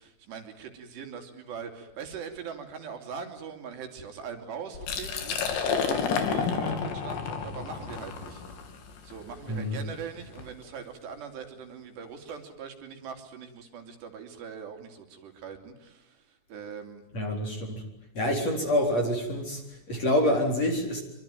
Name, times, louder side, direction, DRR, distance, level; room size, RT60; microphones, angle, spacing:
voice 1, 0.0-8.8 9.0-17.0, right 6 dB, 70° right, 4 dB, 4.9 m, -42 dB
Liquid, 4.7-10.5, left 6 dB, 75° left, 5.2 m, -31 dB
voice 2, 9.5-9.8 17.1-17.8 18.1-21.0, left 1 dB, 35° left, 1 dB, 4.9 m, -27 dB
26.5 x 24.5 x 9.2 m, 0.90 s
omnidirectional pair, 5.2 m